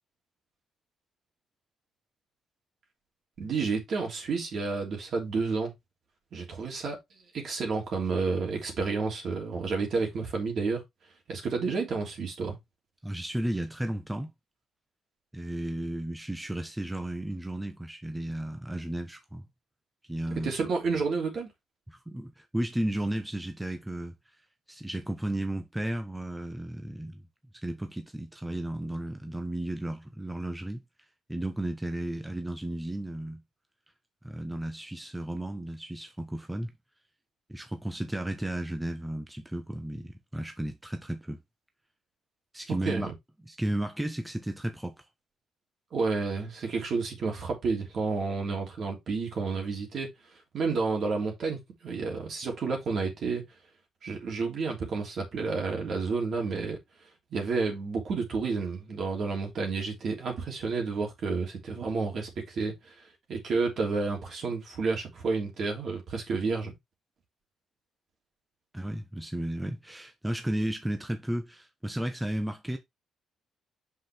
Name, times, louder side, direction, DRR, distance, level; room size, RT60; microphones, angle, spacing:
voice 1, 3.4-5.7 6.3-7.0 7.3-10.8 11.3-12.6 20.3-21.5 42.8-43.1 45.9-50.1 50.5-53.4 54.0-56.8 57.3-62.9 63.3-66.7, right 4 dB, 60° right, 3.1 m, -30 dB
voice 2, 13.0-14.3 15.3-19.5 20.1-20.5 21.9-24.1 24.7-27.2 27.6-30.8 31.3-33.4 34.2-36.7 37.5-41.4 42.5-43.1 43.4-45.0 68.7-72.8, right 1 dB, 10° right, 1.0 m, -34 dB
6.0 x 5.0 x 3.5 m
cardioid pair, 90°, 0 cm